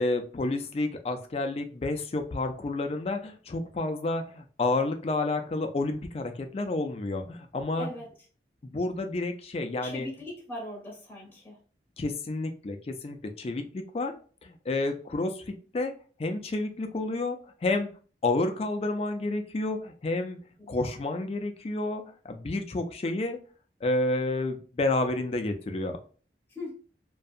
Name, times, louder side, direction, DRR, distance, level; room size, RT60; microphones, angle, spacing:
voice 1, 0.0-7.9 8.6-10.1 12.0-15.9 16.2-17.9 18.2-20.4 20.7-23.4 23.8-26.0, left 2 dB, 35° left, 6 dB, 0.4 m, -30 dB
voice 2, 7.8-8.1 9.8-11.6 20.6-21.0 26.5-26.7, left 1 dB, 10° left, -5 dB, 0.7 m, -40 dB
2.6 x 2.2 x 2.4 m, 0.39 s
head